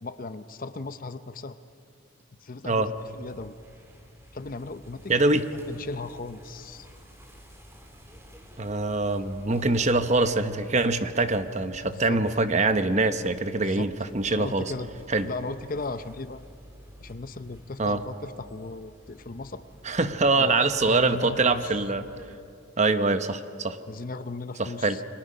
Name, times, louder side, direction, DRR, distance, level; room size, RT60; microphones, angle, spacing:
voice 1, 0.0-1.6 2.4-3.5 4.3-5.3 5.7-6.9 11.9-12.2 13.6-13.9 14.3-14.9 15.2-16.4 17.0-19.6 20.4-20.6 20.9-21.7 23.9-25.0, left 3 dB, 40° left, 12 dB, 0.7 m, -37 dB
sound 1, 3.0-22.4, equal, 10° right, 2.7 m, -50 dB
voice 2, 5.1-5.5 8.6-14.7 15.1-15.3 17.8-18.0 19.8-22.1 22.8-23.8 24.6-25.0, right 3 dB, 35° right, 10 dB, 0.9 m, -24 dB
30.0 x 23.0 x 5.5 m, 2.4 s
head